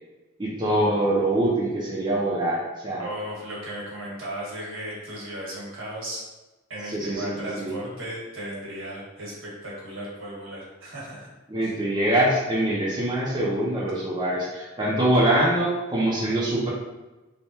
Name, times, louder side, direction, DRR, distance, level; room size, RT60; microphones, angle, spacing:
voice 1, 0.4-3.0 6.9-7.7 11.5-16.7, right 1 dB, 20° right, -7 dB, 0.6 m, -24 dB
voice 2, 3.0-6.2 6.7-11.3 11.6-11.7, right 1 dB, 70° right, -6 dB, 1.4 m, -36 dB
3.4 x 2.2 x 4.2 m, 1.1 s
head